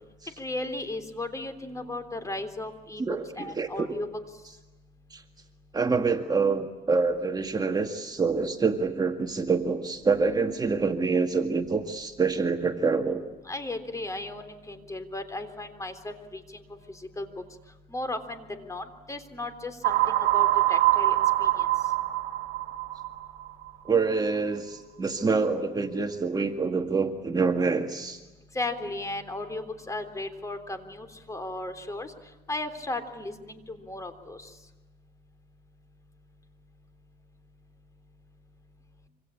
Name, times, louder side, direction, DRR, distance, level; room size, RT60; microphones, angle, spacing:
voice 1, 0.4-4.1 13.5-16.6 16.9-17.3 17.9-21.7 28.5-32.1 32.5-34.5, left 2 dB, 20° left, 9 dB, 3.6 m, -35 dB
voice 2, 3.0-3.9 5.1-5.2 5.7-13.2 23.9-28.2, right 4 dB, 25° right, 5 dB, 1.9 m, -26 dB
sound 1, 19.8-23.7, right 15 dB, 80° right, 2.0 m, -24 dB
26.5 x 25.5 x 8.5 m, 1.1 s
cardioid pair, 110°, 17 cm